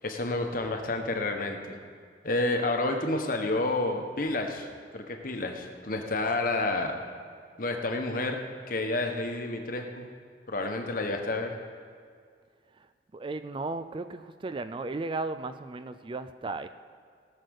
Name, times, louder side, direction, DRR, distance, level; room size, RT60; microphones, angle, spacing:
voice 1, 0.0-1.8 2.2-4.7 4.9-6.9 7.6-8.4 8.7-10.1 10.5-11.6, left 2 dB, 50° left, 4 dB, 1.2 m, -30 dB
voice 2, 12.7-16.7, right 3 dB, 25° right, 12 dB, 0.4 m, -35 dB
18.0 x 6.5 x 6.5 m, 2.1 s
head